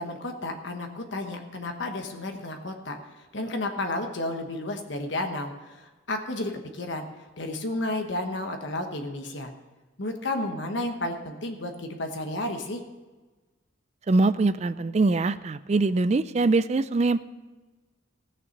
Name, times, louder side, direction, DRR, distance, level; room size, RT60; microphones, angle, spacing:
voice 1, 0.0-3.0 3.3-5.8 6.1-7.0 7.4-9.5 10.0-12.8, left 2 dB, 60° left, 4 dB, 1.2 m, -32 dB
voice 2, 14.1-17.2, right 3 dB, 30° right, 14 dB, 0.3 m, -23 dB
15.5 x 6.8 x 6.5 m, 1.3 s
head